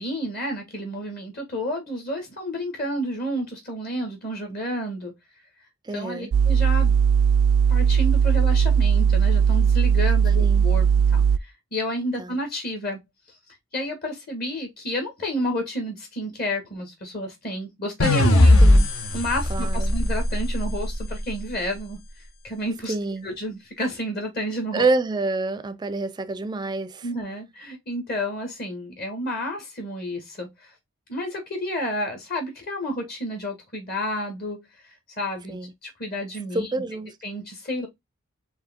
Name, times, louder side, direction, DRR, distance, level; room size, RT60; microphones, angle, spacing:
voice 1, 0.0-5.1 5.9-7.0 7.7-13.0 13.7-18.6 19.1-22.0 22.4-22.9 23.2-24.9 27.0-30.7 31.1-34.6 35.2-36.7 37.2-37.9, equal, 45° left, 1.4 m, -30 dB
voice 2, 5.9-6.3 10.4-10.7 12.2-12.4 18.6-18.9 19.5-19.9 22.9-23.3 24.7-27.1 35.5-35.7 36.5-37.2, right 3 dB, 20° right, 0.4 m, -27 dB
sound 1, 6.3-11.4, right 7 dB, 90° right, 0.3 m, -18 dB
sound 2, 18.0-21.2, left 1 dB, 70° left, 0.9 m, -18 dB
4.8 x 2.7 x 3.4 m
head